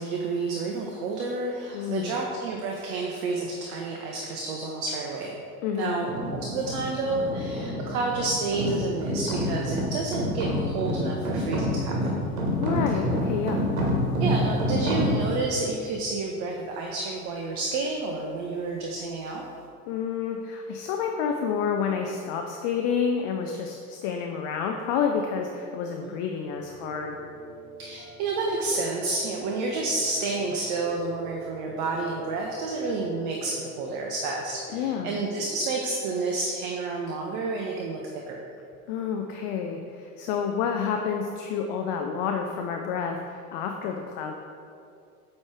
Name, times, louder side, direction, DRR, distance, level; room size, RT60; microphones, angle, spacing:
voice 1, 0.0-5.4 5.8-12.3 14.2-19.4 26.0-26.1 27.8-38.0 38.3-38.4, right 3 dB, 45° right, 0 dB, 0.8 m, -30 dB
voice 2, 1.7-2.1 5.6-6.1 12.6-13.7 19.9-27.2 34.7-35.2 38.9-44.4, left 6 dB, 35° left, 3 dB, 0.4 m, -29 dB
sound 1, 6.0-15.5, equal, 70° right, 1.4 m, -28 dB
Piano, 26.5-35.2, left 1 dB, 85° left, 0.9 m, -44 dB
8.3 x 3.2 x 4.5 m, 2.5 s
figure-of-eight pair, 75°, 45 cm